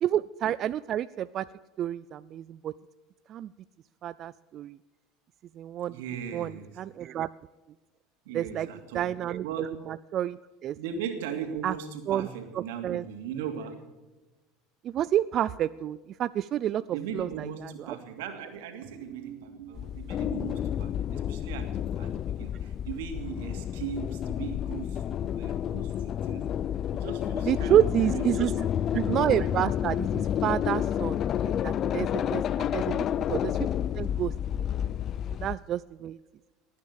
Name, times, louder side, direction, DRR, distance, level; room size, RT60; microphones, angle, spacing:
voice 1, 0.0-1.4 1.8-2.7 3.3-3.5 4.0-4.8 5.6-5.9 6.3-6.5 6.8-7.3 8.3-8.7 8.9-9.5 9.9-10.4 10.6-10.7 11.6-11.7 12.1-12.3 12.8-13.0 14.8-16.8 17.1-17.5 27.5-28.5 28.9-31.2 31.6-32.4 32.7-33.6 33.9-34.3 35.4-36.2, right 11 dB, 45° right, 15 dB, 0.4 m, -28 dB
voice 2, 5.9-6.7 8.2-9.1 9.4-9.7 10.8-13.8 16.9-26.4 26.9-28.6 32.5-32.9 34.8-35.0, right 7 dB, 90° right, 6 dB, 2.7 m, -38 dB
sound 1, 19.7-35.6, left 10 dB, 40° left, 0.4 m, -30 dB
19.0 x 9.6 x 6.8 m, 1.2 s
supercardioid pair, 125°, 0 cm